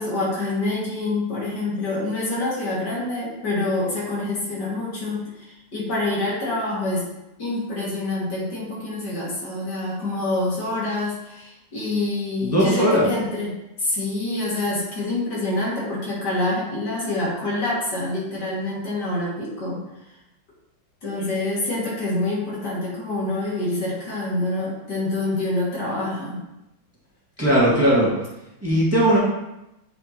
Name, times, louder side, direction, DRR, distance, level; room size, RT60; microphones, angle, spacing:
voice 1, 0.0-7.1 7.4-13.5 13.8-19.8 21.0-26.4, left 2 dB, 65° left, -6 dB, 2.8 m, -26 dB
voice 2, 12.4-13.1 27.4-28.1 28.6-29.2, equal, 10° right, -7 dB, 1.8 m, -18 dB
8.2 x 5.3 x 3.0 m, 0.90 s
omnidirectional pair, 2.0 m